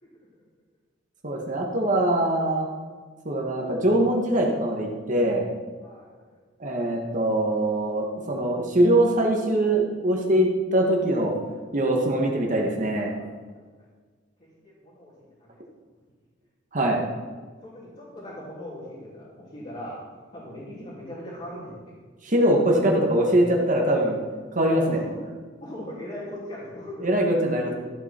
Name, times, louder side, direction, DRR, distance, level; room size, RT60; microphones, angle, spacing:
voice 1, 1.2-2.7 3.2-5.5 6.6-11.4 11.7-13.1 16.7-17.0 22.2-24.2 24.5-25.0 27.0-27.7, right 1 dB, 45° right, 0 dB, 1.6 m, -22 dB
voice 2, 5.8-6.2 13.1-13.4 14.4-15.1 15.4-15.6 17.6-20.0 20.3-22.0 24.6-25.2 25.6-27.1, equal, 35° left, -8 dB, 3.1 m, -39 dB
14.0 x 8.0 x 4.5 m, 1.5 s
head